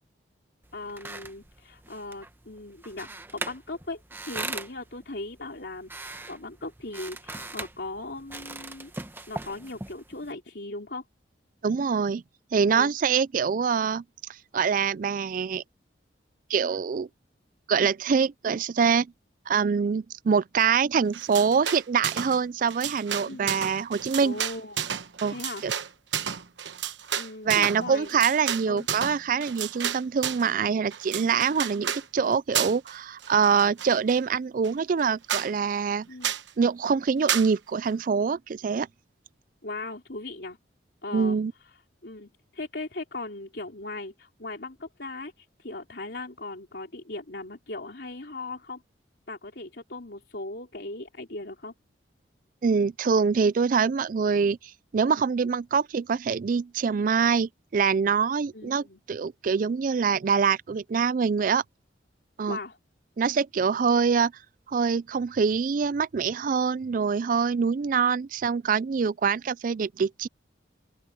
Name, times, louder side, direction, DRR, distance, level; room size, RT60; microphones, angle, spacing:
sound 1, 0.6-10.3, right 2 dB, 10° right, 0.9 m, -40 dB
voice 1, 0.7-8.9 9.3-11.0 12.7-12.9 23.3-23.6 24.2-24.9 25.3-25.7 27.2-28.2 28.7-28.9 36.1-36.3 39.6-40.6 41.0-41.4 42.0-48.8 49.3-51.7 58.5-59.0 62.5-62.8, left 2 dB, 65° left, 3.6 m, -38 dB
voice 2, 11.6-12.2 12.5-14.0 14.5-15.6 16.5-17.1 17.7-19.1 19.5-24.4 25.2-25.4 25.6-25.7 27.4-36.1 36.6-38.9 41.1-41.5 52.6-54.6 54.9-61.6 62.4-62.6 63.2-64.3 64.7-70.3, right 6 dB, 45° right, 0.3 m, -24 dB
sound 2, 21.1-22.4 22.6-30.5 30.9-32.0 32.5-32.9 33.2-34.2 34.6-34.7 35.0-35.1 35.3-35.5 36.2-36.5 37.3-37.5, right 9 dB, 80° right, 1.0 m, -31 dB
open air
head